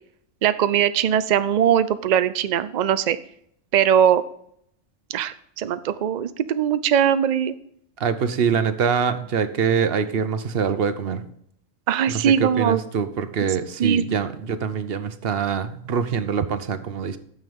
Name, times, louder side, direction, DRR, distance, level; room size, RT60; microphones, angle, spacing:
voice 1, 0.4-3.2 3.7-4.2 5.1-7.5 11.9-12.8 13.8-14.0, right 9 dB, 75° right, 14 dB, 0.4 m, -20 dB
voice 2, 8.0-11.2 12.1-17.2, right 6 dB, 50° right, 12 dB, 0.9 m, -24 dB
9.4 x 6.4 x 5.3 m, 0.70 s
omnidirectional pair, 1.3 m